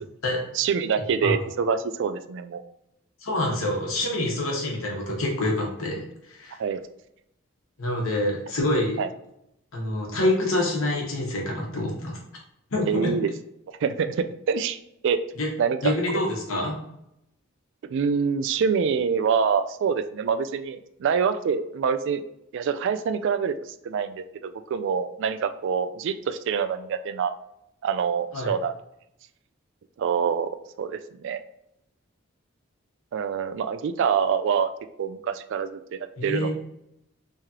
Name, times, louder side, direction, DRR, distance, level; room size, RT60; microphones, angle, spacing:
voice 1, 0.6-2.6 6.6-6.8 9.0-9.1 12.9-13.3 13.8-14.8 15.0-15.2 15.6-15.9 17.8-22.2 22.5-23.6 23.8-27.3 27.8-28.7 30.0-30.5 30.8-31.4 33.1-34.7 35.0-36.5, right 6 dB, 60° right, 10 dB, 0.3 m, -25 dB
voice 2, 3.2-6.6 7.8-9.0 9.7-12.2 12.7-13.1 15.4-15.5 15.8-16.8 28.3-28.5 36.2-36.5, left 1 dB, 90° left, -2 dB, 1.2 m, -26 dB
3.6 x 3.2 x 2.9 m, 0.79 s
head